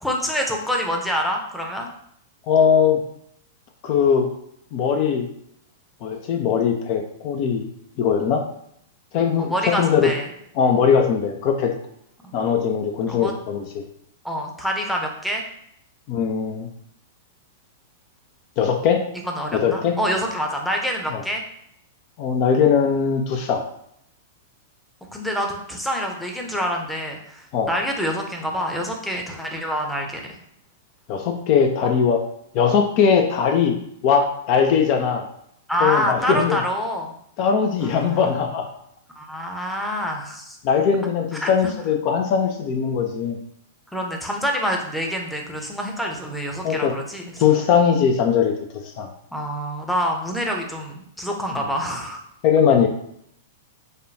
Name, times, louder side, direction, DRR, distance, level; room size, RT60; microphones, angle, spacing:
voice 1, 0.0-1.9 9.4-10.3 12.2-12.3 13.1-13.3 14.2-15.4 19.2-21.4 25.1-30.4 31.8-31.9 35.7-37.1 38.0-38.3 39.2-40.6 41.4-41.7 43.9-47.2 49.3-52.2, equal, 5° left, 1 dB, 0.7 m, -26 dB
voice 2, 2.5-3.0 3.8-4.3 4.7-5.3 6.0-7.7 8.0-8.4 9.1-10.1 10.6-11.7 12.3-13.8 16.1-16.7 18.6-19.0 19.5-19.9 21.1-21.2 22.2-23.6 27.5-27.7 31.1-32.2 32.5-33.8 34.0-35.2 35.8-36.6 37.4-38.7 40.6-43.4 46.6-46.9 47.4-48.5 48.8-49.1 52.4-52.9, left 7 dB, 45° left, 3 dB, 0.4 m, -20 dB
4.9 x 2.2 x 2.7 m, 0.71 s
figure-of-eight pair, 100°, 0 cm